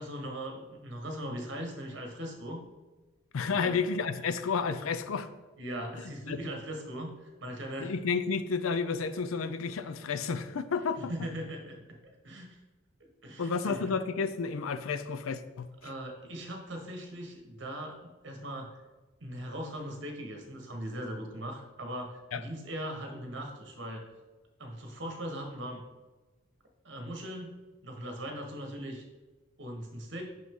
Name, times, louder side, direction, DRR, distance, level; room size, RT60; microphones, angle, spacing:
voice 1, 0.0-2.6 3.5-3.8 5.6-7.9 11.0-12.6 13.2-13.8 15.8-18.8 19.2-24.1 24.6-25.8 26.8-27.5 27.8-29.0 29.6-30.2, equal, 60° right, 2 dB, 1.3 m, -40 dB
voice 2, 3.3-5.3 6.3-6.4 7.8-11.1 13.4-15.7 22.3-22.4, left 5 dB, 85° left, 12 dB, 0.5 m, -31 dB
6.2 x 5.9 x 3.7 m, 1.2 s
head